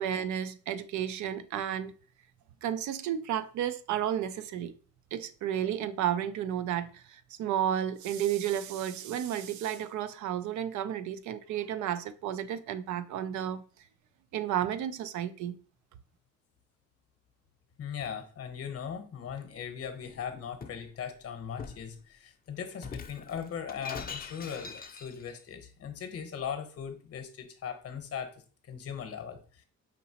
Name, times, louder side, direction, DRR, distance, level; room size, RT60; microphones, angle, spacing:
voice 1, 0.0-1.9 2.6-4.7 5.1-13.6 14.3-15.5, right 10 dB, 75° right, 0.5 m, -32 dB
voice 2, 17.8-28.4 28.6-29.6, left 7 dB, 50° left, 0.9 m, -39 dB
Shatter, 20.0-20.9 21.6-21.9 22.8-25.4, left 5 dB, 30° left, 0.5 m, -43 dB
5.2 x 2.8 x 2.8 m
cardioid pair, 90°, 30 cm